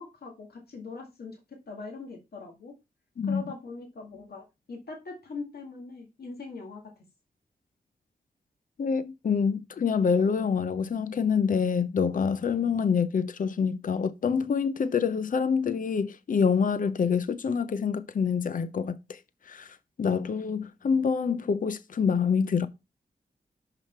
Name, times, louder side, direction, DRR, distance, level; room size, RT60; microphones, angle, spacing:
voice 1, 0.0-1.4 1.7-2.7 3.3-6.8, left 4 dB, 70° left, 2.0 m, -41 dB
voice 2, 8.8-19.2 19.5-22.7, left 6 dB, 55° left, 0.6 m, -26 dB
5.8 x 4.8 x 4.4 m
cardioid pair, 60°, 16 cm